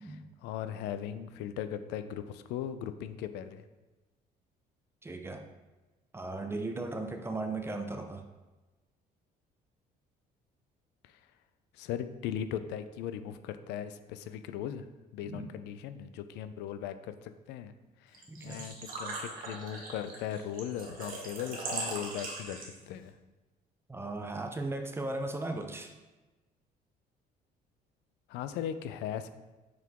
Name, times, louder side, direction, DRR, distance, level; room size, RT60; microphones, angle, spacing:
voice 1, 0.0-3.6 11.0-11.2 11.7-14.9 15.1-17.7 18.0-23.1 28.3-29.3, left 9 dB, 90° left, 11 dB, 0.5 m, -38 dB
voice 2, 5.0-5.5 6.1-8.2 15.2-15.5 18.3-18.7 23.9-25.9, right 2 dB, 15° right, 5 dB, 0.6 m, -37 dB
Engine / Trickle dribble / Fill (with liquid), 18.1-23.0, right 3 dB, 55° right, 1.6 m, -40 dB
5.9 x 4.6 x 3.6 m, 1.1 s
cardioid pair, 110°, 17 cm